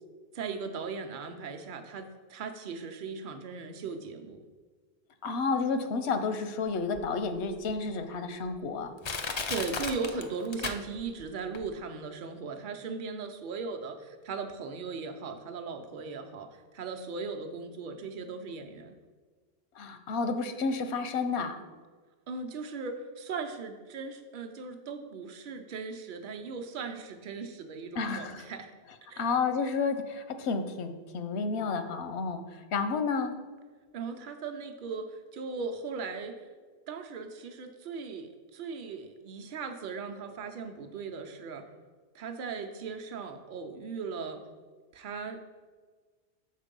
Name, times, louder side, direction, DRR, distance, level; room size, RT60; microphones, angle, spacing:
voice 1, 0.3-4.4 9.5-18.9 22.3-28.7 29.1-29.2 33.9-36.4 36.9-41.6 42.1-44.4 44.9-45.4, right 4 dB, 55° right, 5 dB, 0.8 m, -38 dB
voice 2, 5.2-8.9 19.8-21.6 27.9-28.5 29.2-33.3, left 4 dB, 85° left, 8 dB, 0.9 m, -31 dB
Crushing, 6.9-7.0 7.7-7.8 8.5-8.6 9.0-11.2 11.5-11.6, left 4 dB, 45° left, 0.3 m, -34 dB
6.6 x 4.5 x 5.2 m, 1.4 s
omnidirectional pair, 1.1 m